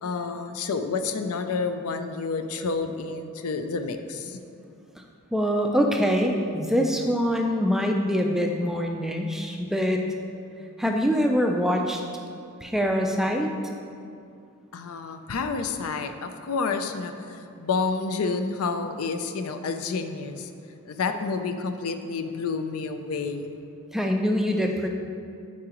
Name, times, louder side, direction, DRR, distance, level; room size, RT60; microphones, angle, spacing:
voice 1, 0.0-4.4 14.7-20.5 20.8-23.6, left 4 dB, 70° left, 8 dB, 0.4 m, -29 dB
voice 2, 5.3-10.0 10.8-12.0 12.6-13.5 23.9-24.9, equal, ahead, 2 dB, 0.3 m, -24 dB
8.5 x 4.8 x 2.9 m, 2.5 s
head